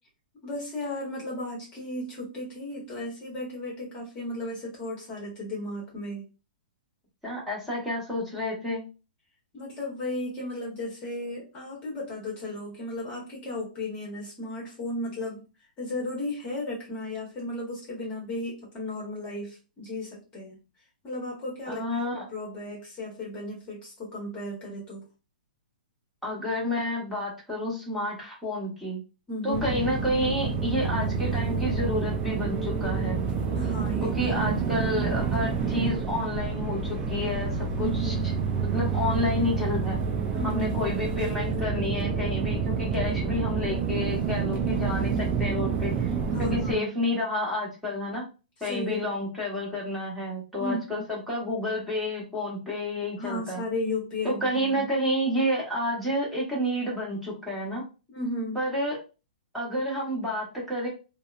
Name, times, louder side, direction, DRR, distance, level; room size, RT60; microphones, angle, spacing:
voice 1, 0.4-6.2 9.5-15.4 15.8-20.6 21.0-25.1 29.3-29.7 33.5-34.5 37.8-38.3 40.3-40.7 46.3-46.9 48.6-49.1 50.6-51.0 53.2-54.9 58.1-58.6, left 1 dB, 25° left, -3 dB, 1.0 m, -34 dB
voice 2, 7.2-8.8 21.7-22.2 26.2-29.0 29.4-33.2 34.0-38.1 38.6-40.0 40.4-46.1 46.4-48.2 48.6-53.6 54.2-57.8 58.5-59.0 59.5-60.9, left 1 dB, ahead, -6 dB, 1.1 m, -30 dB
sound 1, 29.5-46.8, right 5 dB, 20° right, 0.4 m, -28 dB
2.7 x 2.1 x 2.4 m, 0.31 s
hypercardioid pair, 145°, 5 cm